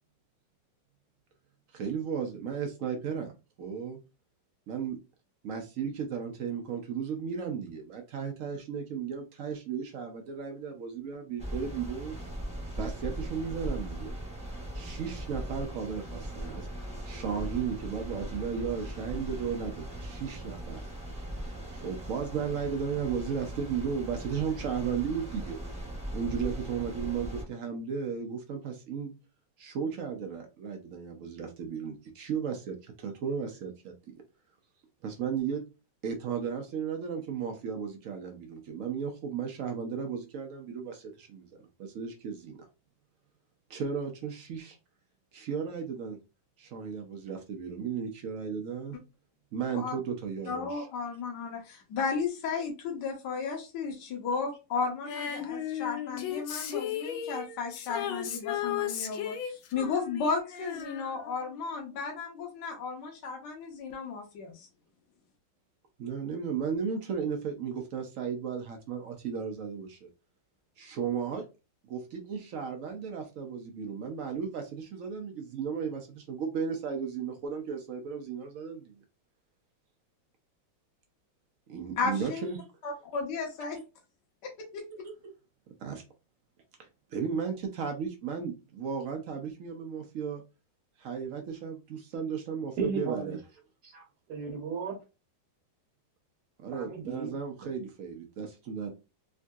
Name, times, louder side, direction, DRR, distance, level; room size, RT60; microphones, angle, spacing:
voice 1, 1.7-3.3 3.6-4.0 4.7-5.0 5.4-12.2 12.8-14.1 14.7-16.7 17.0-20.8 21.7-25.6 26.1-29.1 29.6-34.2 35.0-35.6 36.0-42.7 43.7-44.8 45.3-46.2 46.6-49.0 49.5-50.9 66.0-70.1 70.8-71.4 71.9-79.0 81.7-82.6 85.0-85.1 85.8-86.0 86.8-90.4 91.0-93.4 96.6-98.9, right 6 dB, 80° right, 4 dB, 0.7 m, -35 dB
sound 1, 11.4-27.4, right 1 dB, 5° right, 0.5 m, -39 dB
voice 2, 50.5-64.7 82.0-82.4 82.8-83.8 84.7-84.8, left 5 dB, 65° left, 0 dB, 1.4 m, -34 dB
Female singing, 55.1-61.7 62.0-62.1, left 10 dB, 90° left, 1.4 m, -36 dB
voice 3, 92.8-93.4 93.8-95.0 96.7-97.3, right 5 dB, 60° right, 1 dB, 1.2 m, -34 dB
3.7 x 2.6 x 2.3 m, 0.28 s
omnidirectional pair, 2.1 m